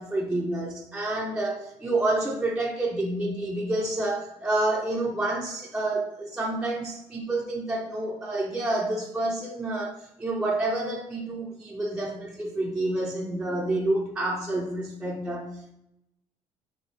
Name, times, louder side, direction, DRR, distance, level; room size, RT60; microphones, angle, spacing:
voice 1, 0.0-15.7, right 2 dB, 5° right, -2 dB, 0.6 m, -29 dB
4.7 x 3.0 x 2.9 m, 0.83 s
cardioid pair, 90°, 12 cm